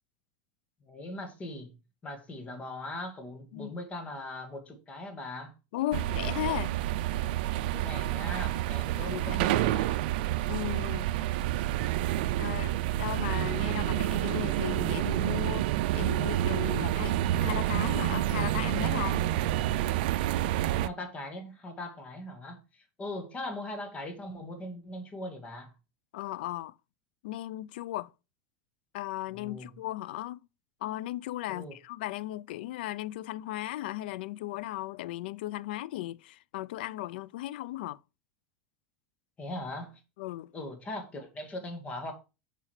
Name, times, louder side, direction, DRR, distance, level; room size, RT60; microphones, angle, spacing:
voice 1, 0.9-1.7 2.0-5.5 7.6-10.1 20.4-25.7 29.3-29.7 31.5-31.8 39.4-40.0 40.5-42.1, left 1 dB, 25° left, 1.9 m, -40 dB
voice 2, 5.7-6.8 8.9-9.4 10.5-11.1 12.4-15.7 15.9-19.2 26.1-26.7 27.2-28.1 28.9-30.4 30.8-38.0 40.2-40.5, left 15 dB, 75° left, 0.4 m, -36 dB
sound 1, 5.9-20.9, right 14 dB, 70° right, 0.5 m, -29 dB
7.3 x 5.5 x 3.2 m
supercardioid pair, 125°, 5 cm